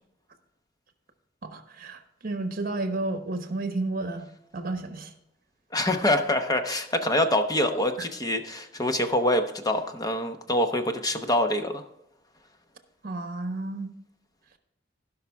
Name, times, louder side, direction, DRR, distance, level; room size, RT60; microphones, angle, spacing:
voice 1, 1.4-4.3 4.5-5.1 8.0-8.1 13.0-13.9, right 2 dB, 50° right, 7 dB, 1.1 m, -32 dB
voice 2, 5.7-11.8, left 1 dB, 20° left, 6 dB, 0.9 m, -25 dB
16.5 x 5.7 x 3.5 m, 0.84 s
head